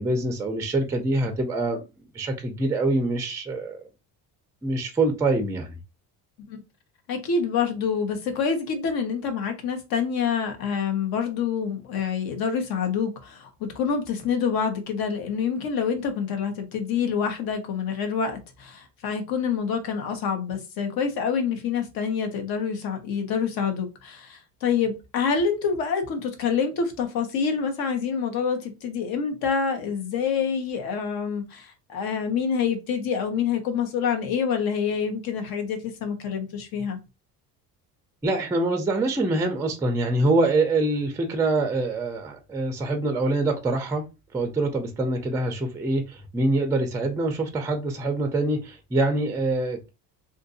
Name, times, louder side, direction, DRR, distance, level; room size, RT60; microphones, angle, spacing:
voice 1, 0.0-1.8 2.1-3.8 4.6-5.7 38.2-44.0 44.3-49.9, right 2 dB, 10° right, 0.4 m, -25 dB
voice 2, 7.1-37.0, left 6 dB, 65° left, 1.1 m, -27 dB
2.7 x 2.5 x 3.9 m
cardioid pair, 150°, 39 cm